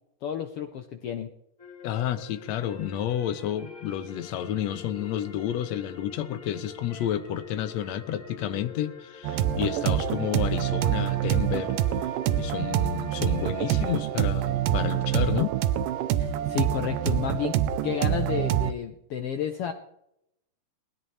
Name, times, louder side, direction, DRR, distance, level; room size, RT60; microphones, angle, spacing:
voice 1, 0.2-1.3 16.2-17.6 17.8-19.7, left 9 dB, 85° left, 1.3 m, -31 dB
sound 1, 1.6-14.0, left 6 dB, 30° left, 2.3 m, -45 dB
voice 2, 1.8-11.8 12.3-15.5, left 10 dB, 65° left, 1.9 m, -30 dB
sound 2, 9.2-18.7, right 11 dB, 80° right, 2.4 m, -26 dB
20.0 x 15.5 x 3.3 m
omnidirectional pair, 3.8 m